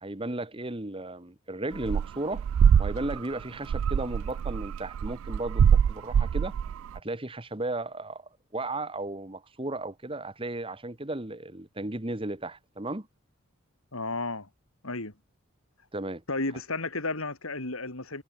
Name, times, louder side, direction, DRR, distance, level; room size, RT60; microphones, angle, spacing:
voice 1, 0.0-2.4 2.8-6.5 6.9-8.2 8.5-13.1 15.9-16.2, right 2 dB, 25° right, 1.4 m, -35 dB
sound 1, 1.7-2.1 2.3-7.0, right 7 dB, 75° right, 0.3 m, -23 dB
voice 2, 13.9-14.5 14.8-15.1 16.3-18.2, left 3 dB, 75° left, 3.8 m, -32 dB
head